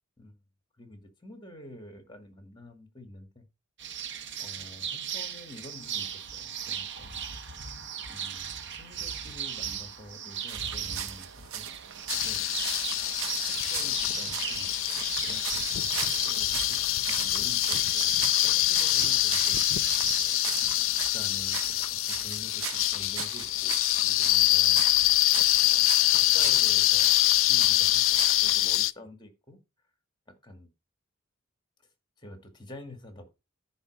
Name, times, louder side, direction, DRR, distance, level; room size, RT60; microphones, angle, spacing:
voice 1, 0.8-3.5 4.4-7.2 8.1-11.7 12.1-12.4 13.0-16.8 17.1-19.6 20.6-23.7 24.0-24.8 25.5-27.2 27.5-29.6 30.4-30.7 32.2-33.3, left 1 dB, 20° left, 6 dB, 2.1 m, -48 dB
sound 1, 3.8-21.1, right 8 dB, 60° right, 1.2 m, -38 dB
sound 2, 10.5-28.8, right 9 dB, 85° right, 0.9 m, -39 dB
sound 3, 12.1-28.9, left 16 dB, 70° left, 0.5 m, -25 dB
9.8 x 4.1 x 6.6 m, 0.26 s
head